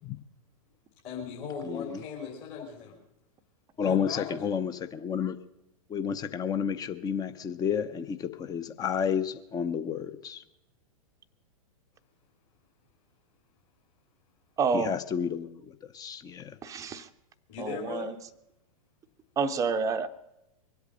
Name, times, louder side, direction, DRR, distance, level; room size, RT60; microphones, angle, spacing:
voice 1, 1.0-3.0 3.8-4.5 17.5-18.1, left 6 dB, 40° left, -2 dB, 3.4 m, -38 dB
voice 2, 1.6-2.0 3.8-5.4 5.9-10.4 14.7-16.6, left 7 dB, 20° left, 12 dB, 0.8 m, -31 dB
voice 3, 14.6-14.9 16.6-17.1 17.6-18.2 19.4-20.1, right 5 dB, 15° right, 7 dB, 0.8 m, -28 dB
23.0 x 8.3 x 6.6 m, 0.86 s
figure-of-eight pair, 100°, 19 cm